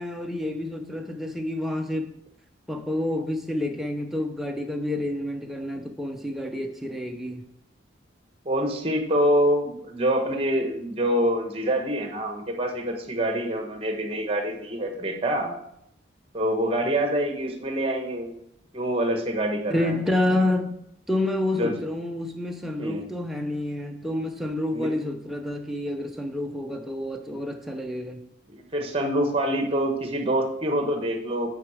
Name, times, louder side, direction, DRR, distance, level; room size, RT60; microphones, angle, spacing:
voice 1, 0.0-2.1 2.7-7.4 19.7-20.7 21.1-28.2, left 1 dB, ahead, 0.6 m, -28 dB
voice 2, 8.4-15.6 16.3-18.3 18.7-20.0 21.5-21.8 22.8-23.0 24.7-24.9 28.5-31.5, right 1 dB, 30° right, 1.1 m, -26 dB
9.3 x 4.8 x 4.8 m
head